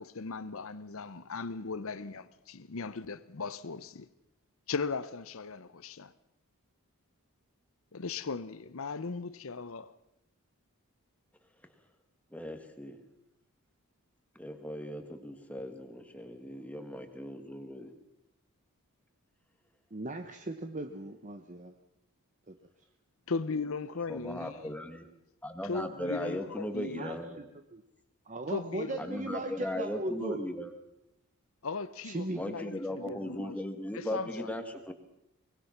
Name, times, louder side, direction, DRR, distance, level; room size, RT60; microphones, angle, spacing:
voice 1, 0.0-4.1 4.7-6.1 7.9-9.9 23.3-24.7 25.6-27.2 28.5-29.1 31.6-33.6 33.9-34.5, left 4 dB, 65° left, 0.8 m, -38 dB
voice 2, 12.3-13.0 14.4-17.9 24.1-25.0 25.4-27.4 29.0-30.7 32.3-34.9, equal, 5° left, 1.8 m, -38 dB
voice 3, 19.9-21.7 22.5-22.6 26.8-27.2 27.7-27.8 28.3-30.4 32.0-32.6, right 1 dB, 35° right, 1.1 m, -37 dB
24.5 x 20.0 x 5.9 m
head